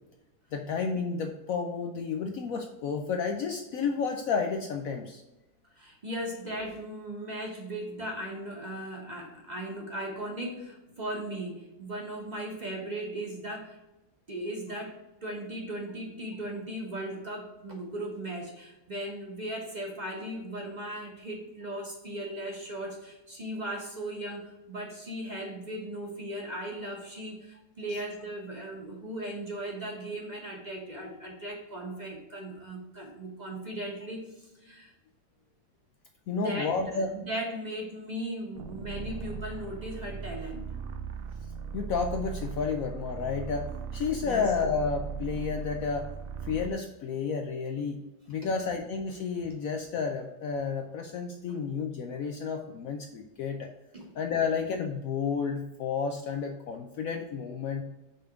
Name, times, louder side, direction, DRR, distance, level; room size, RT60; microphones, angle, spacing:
voice 1, 0.5-5.2 36.3-37.1 41.7-46.1 46.4-48.0 48.3-53.7 54.2-57.8, left 5 dB, 75° left, 4 dB, 0.7 m, -31 dB
voice 2, 5.8-13.8 14.3-34.9 36.3-40.6 44.2-44.5 48.4-48.5 49.4-49.5 51.5-51.6 53.9-54.2, right 1 dB, 30° right, -1 dB, 1.0 m, -37 dB
sound 1, 38.6-46.8, right 6 dB, 75° right, 0.8 m, -38 dB
5.7 x 3.5 x 5.0 m, 0.99 s
omnidirectional pair, 2.0 m